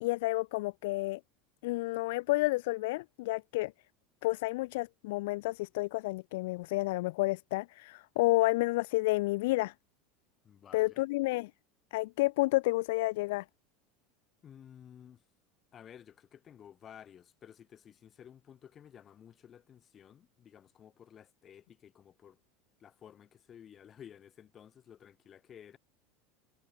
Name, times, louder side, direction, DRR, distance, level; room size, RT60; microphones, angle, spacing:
voice 1, 0.0-1.2 1.6-3.7 4.2-9.7 10.7-11.5 11.9-13.4, left 21 dB, 70° left, 0.5 m, -30 dB
voice 2, 10.4-11.0 14.4-15.2 15.7-22.4 22.8-25.8, left 9 dB, 20° left, 4.0 m, -54 dB
supercardioid pair, 175°, 0 cm